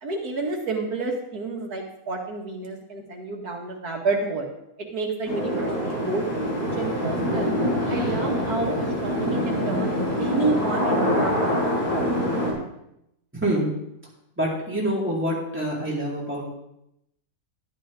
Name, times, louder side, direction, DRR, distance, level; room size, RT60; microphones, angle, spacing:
voice 1, 0.0-4.5 4.8-7.5 7.9-8.7 9.0-11.6 11.9-12.1, right 3 dB, 80° right, 1 dB, 2.5 m, -30 dB
sound 1, 5.2-12.5, equal, 85° left, 6.4 m, -25 dB
voice 2, 13.3-13.7 14.4-16.4, right 1 dB, 5° right, -6 dB, 4.0 m, -26 dB
12.5 x 11.5 x 3.8 m, 0.82 s
omnidirectional pair, 1.6 m